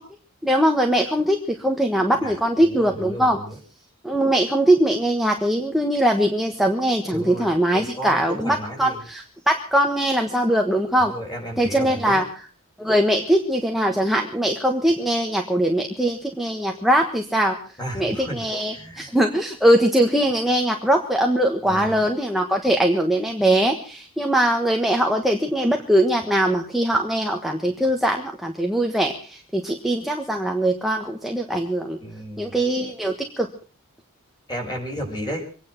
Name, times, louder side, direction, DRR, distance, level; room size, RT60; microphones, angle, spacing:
voice 1, 0.4-3.4 4.0-11.1 11.6-12.5 12.8-32.0 32.4-33.5, right 1 dB, ahead, 2 dB, 1.4 m, -21 dB
voice 2, 2.2-3.5 7.1-9.0 11.0-12.2 17.8-18.4 18.7-19.1 21.6-22.0 32.0-32.6 34.5-35.4, equal, 20° left, 2 dB, 5.8 m, -33 dB
24.5 x 9.7 x 5.9 m, 0.42 s
head